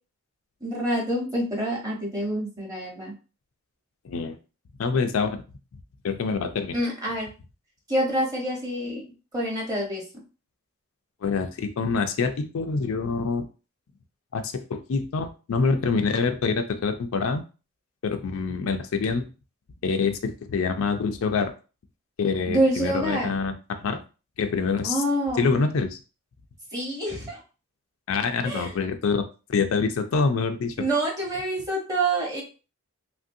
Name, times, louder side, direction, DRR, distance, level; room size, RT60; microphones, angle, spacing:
voice 1, 0.6-3.1 6.7-7.3 7.9-9.0 9.3-10.0 22.5-23.3 24.8-25.5 26.7-27.4 28.4-28.7 30.8-32.4, right 1 dB, 15° right, -2 dB, 1.0 m, -27 dB
voice 2, 4.0-4.4 4.8-5.4 6.0-6.8 11.2-13.5 14.3-17.4 18.0-19.2 19.8-21.5 22.2-24.0 24.4-25.0 25.4-26.0 28.1-29.2 29.5-30.7, left 4 dB, 75° left, 7 dB, 0.4 m, -26 dB
3.1 x 2.5 x 2.6 m, 0.34 s
head